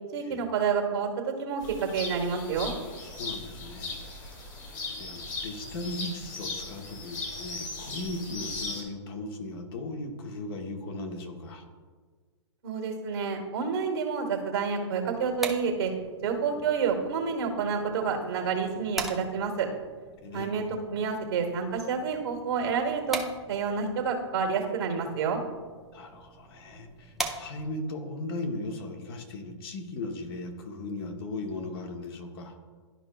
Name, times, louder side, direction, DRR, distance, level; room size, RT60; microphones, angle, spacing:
voice 1, 0.1-2.7 12.6-15.9 16.2-19.7 20.3-23.2 23.5-25.4, right 6 dB, 60° right, 3 dB, 1.3 m, -29 dB
sound 1, 1.6-8.8, left 3 dB, 25° left, 1.5 m, -38 dB
voice 2, 3.0-4.4 5.0-11.6 16.5-16.6 20.2-20.6 25.9-32.6, left 2 dB, 50° left, 4 dB, 1.3 m, -37 dB
sound 2, 15.0-27.9, right 2 dB, ahead, 0.5 m, -42 dB
12.0 x 4.9 x 2.3 m, 1.5 s
hypercardioid pair, 130°, 15 cm